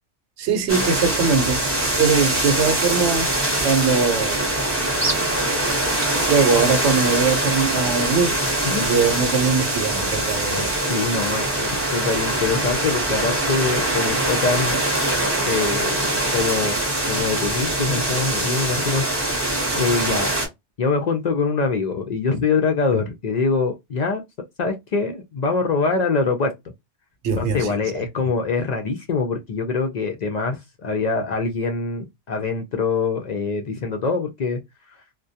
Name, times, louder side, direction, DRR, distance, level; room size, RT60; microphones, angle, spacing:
voice 1, 0.4-1.6 2.0-3.3 3.6-4.5 6.3-8.3 8.8-10.7 27.2-28.0, right 5 dB, 75° right, 0.9 m, -21 dB
sound 1, 0.7-20.5, right 1 dB, 15° right, 0.6 m, -23 dB
voice 2, 10.9-14.8 15.4-16.8 17.1-19.0 19.7-20.3 20.8-24.2 24.6-26.5 27.4-34.6, left 4 dB, 60° left, 0.4 m, -24 dB
2.2 x 2.1 x 2.6 m
omnidirectional pair, 1.2 m